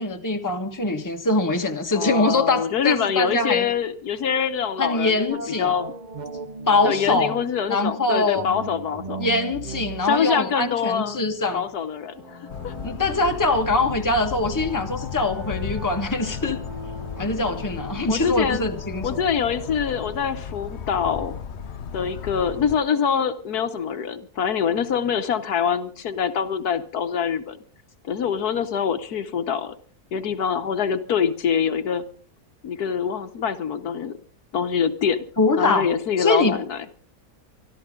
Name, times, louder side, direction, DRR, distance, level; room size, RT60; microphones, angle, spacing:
voice 1, 0.0-3.7 4.8-5.7 6.7-7.3 7.7-8.5 9.2-11.6 12.8-16.6 17.2-19.2 35.4-35.9 36.2-36.6, left 2 dB, 10° left, 4 dB, 1.3 m, -23 dB
voice 2, 1.9-5.9 6.8-9.3 10.0-11.2 11.5-12.7 18.1-18.7 19.0-21.3 21.9-27.6 28.0-29.7 30.1-32.0 32.6-34.2 34.5-35.3 35.6-36.8, left 7 dB, 70° left, 9 dB, 1.5 m, -25 dB
sound 1, 5.3-7.6 8.3-11.7, right 4 dB, 35° right, 0.8 m, -37 dB
sound 2, 12.1-20.8, equal, 75° right, 5.9 m, -43 dB
sound 3, 12.5-22.8, left 7 dB, 50° left, 1.0 m, -35 dB
24.5 x 12.5 x 3.7 m, 0.42 s
omnidirectional pair, 1.7 m